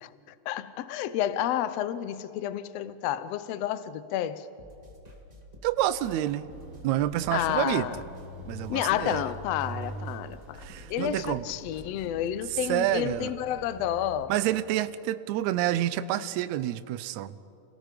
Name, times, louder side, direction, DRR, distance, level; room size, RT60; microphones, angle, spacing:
voice 1, 0.0-4.5 7.3-8.0 8.7-10.6 10.9-14.3, left 11 dB, 75° left, 1.5 m, -30 dB
sound 1, 4.6-12.1, left 1 dB, 15° right, 1.4 m, -51 dB
voice 2, 5.6-6.5 6.8-7.9 8.5-9.2 10.6-11.4 12.7-13.3 14.3-17.3, right 13 dB, 75° right, 1.9 m, -28 dB
sound 2, 6.5-14.3, right 3 dB, 55° right, 2.4 m, -44 dB
sound 3, 9.8-12.8 13.1-13.5 13.8-14.1 14.4-15.0, left 1 dB, 10° left, 1.2 m, -56 dB
29.0 x 18.0 x 5.1 m
omnidirectional pair, 3.6 m